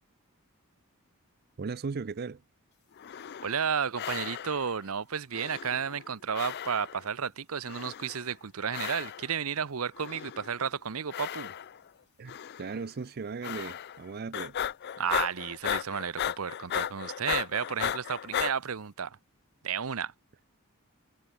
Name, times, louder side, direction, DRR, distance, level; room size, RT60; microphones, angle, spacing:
voice 1, 1.6-2.4 12.2-14.5, right 4 dB, 45° right, 0.5 m, -37 dB
sound 1, 3.0-3.7 4.0-4.8 5.3-6.1 6.3-7.1 7.7-8.3 8.7-9.4 9.9-10.6 11.1-11.9 12.3-12.8 13.4-14.0 14.3-18.5, left 9 dB, 50° left, 0.4 m, -35 dB
voice 2, 3.4-11.5 15.0-19.2 19.6-20.1, right 7 dB, 75° right, 0.8 m, -32 dB
head